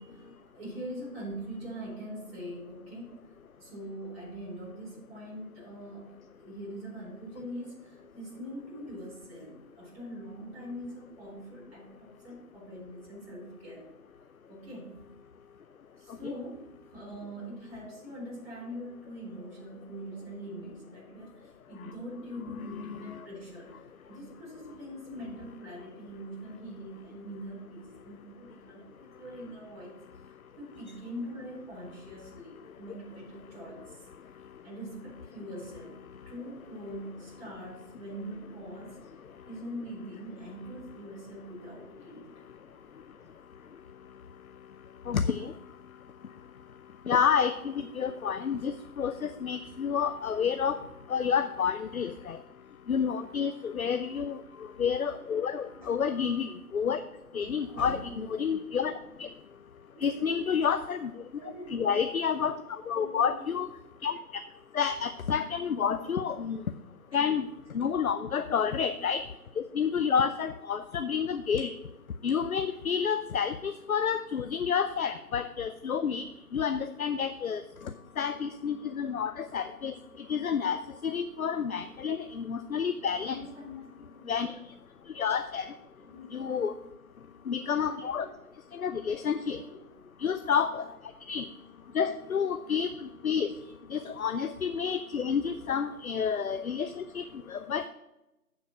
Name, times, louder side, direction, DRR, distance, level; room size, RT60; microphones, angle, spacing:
voice 1, 0.0-3.2 3.6-13.9 14.5-15.0 16.0-16.6 16.9-30.0 30.6-34.1 34.6-36.0 36.3-39.0 39.5-42.5 48.6-48.8 53.4-53.9 55.7-56.1 57.3-58.4 58.7-58.9 59.9-60.5 61.4-62.2 62.9-63.6 65.7-66.1 68.3-69.0 83.3-84.6 86.0-86.7 87.8-88.3 89.4-89.8 93.6-93.7 95.4-95.5, equal, 40° right, -6 dB, 3.9 m, -43 dB
voice 2, 22.4-23.2 45.1-45.5 47.1-50.8 51.1-52.4 52.9-54.4 54.8-57.0 57.3-58.9 59.2-59.3 60.0-61.1 61.7-63.7 64.0-64.4 64.7-66.6 67.1-67.5 67.7-69.2 69.6-71.7 72.2-76.2 76.5-77.6 78.2-79.9 80.3-83.4 84.3-84.5 85.1-85.7 86.3-86.7 87.5-88.3 88.7-89.6 90.2-90.9 91.3-91.5 91.9-93.5 93.9-97.9, left 7 dB, 70° left, 11 dB, 0.6 m, -29 dB
7.2 x 6.8 x 6.0 m, 0.96 s
figure-of-eight pair, 160°, 45 cm